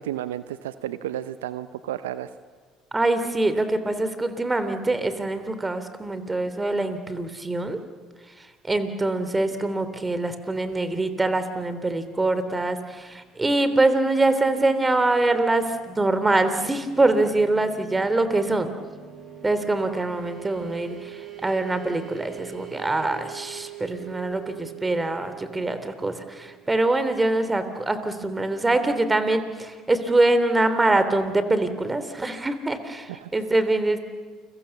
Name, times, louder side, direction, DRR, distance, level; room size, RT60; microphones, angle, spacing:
voice 1, 0.0-2.3 33.1-33.3, right 12 dB, 85° right, 14 dB, 0.8 m, -32 dB
voice 2, 2.9-7.8 8.6-18.7 19.4-34.0, right 2 dB, 20° right, 10 dB, 3.3 m, -24 dB
sound 1, 15.1-27.7, right 12 dB, 45° right, 5.0 m, -43 dB
29.5 x 23.5 x 7.2 m, 1.5 s
hypercardioid pair, 65°, 0 cm